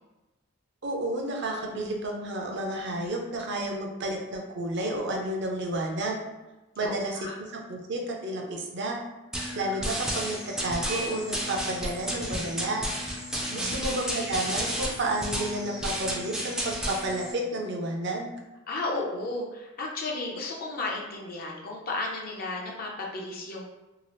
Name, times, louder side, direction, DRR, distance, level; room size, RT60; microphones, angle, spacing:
voice 1, 0.8-6.2 6.8-7.2 7.5-9.0 9.6-12.8 13.5-18.3, right 1 dB, 55° right, 0 dB, 0.5 m, -31 dB
voice 2, 6.8-7.4 13.5-14.4 18.7-23.6, left 2 dB, 45° left, -2 dB, 0.5 m, -34 dB
sound 1, 9.3-17.3, equal, 5° right, 0.4 m, -32 dB
2.8 x 2.4 x 3.0 m, 1.1 s
head